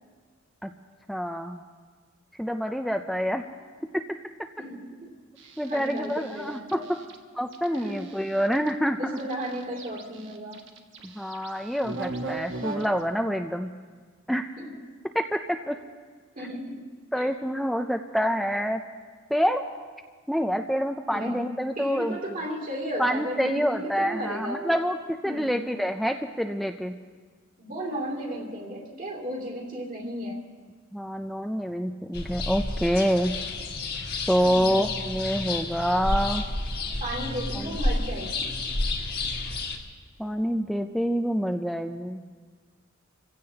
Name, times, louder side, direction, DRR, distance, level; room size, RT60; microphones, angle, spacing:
voice 1, 1.1-1.6 2.4-3.4 3.9-4.0 5.6-7.0 7.3-9.2 11.0-13.7 14.3-14.5 15.1-15.8 17.1-18.8 19.3-19.6 20.3-22.4 23.0-26.9 30.9-33.3 34.3-36.4 37.5-37.8 40.2-42.2, equal, ahead, 4 dB, 0.4 m, -27 dB
voice 2, 4.6-5.1 5.7-6.9 7.7-8.1 9.0-10.6 14.6-14.7 16.4-16.8 17.2-17.3 21.1-21.5 21.8-24.8 25.2-25.6 27.6-30.4 34.4-34.9 37.0-38.6, equal, 40° right, 0 dB, 2.7 m, -34 dB
sound 1, 5.4-7.2 7.5-8.7 9.2-13.0, right 3 dB, 60° right, 1.4 m, -39 dB
sound 2, 32.1-39.8, left 2 dB, 50° left, 1.6 m, -30 dB
26.5 x 16.0 x 2.9 m, 1.6 s
head